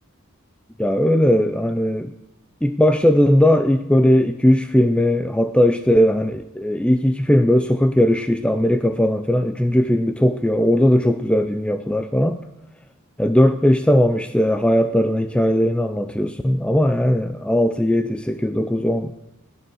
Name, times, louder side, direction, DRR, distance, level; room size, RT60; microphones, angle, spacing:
voice 1, 0.8-2.1 2.6-12.4 13.2-19.1, equal, 5° left, 9 dB, 0.4 m, -18 dB
17.0 x 12.5 x 6.3 m, 0.94 s
head